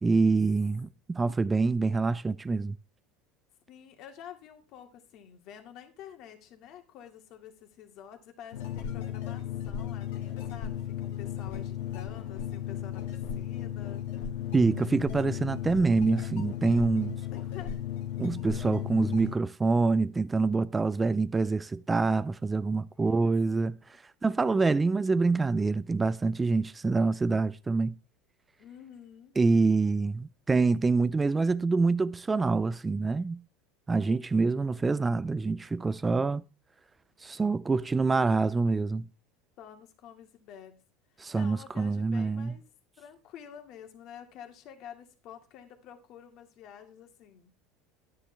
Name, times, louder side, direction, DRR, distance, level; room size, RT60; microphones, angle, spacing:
voice 1, 0.0-2.8 14.5-17.2 18.2-23.8 24.2-27.9 29.4-33.4 33.9-36.4 37.2-39.0 41.2-42.5, right 3 dB, 15° right, 0.4 m, -26 dB
voice 2, 3.7-14.4 17.3-17.8 22.9-23.1 28.6-29.4 39.6-40.7 41.3-42.6 43.0-47.5, left 9 dB, 55° left, 2.2 m, -49 dB
sound 1, 8.5-19.3, left 10 dB, 85° left, 2.0 m, -35 dB
10.5 x 10.0 x 3.4 m
supercardioid pair, 125°, 0 cm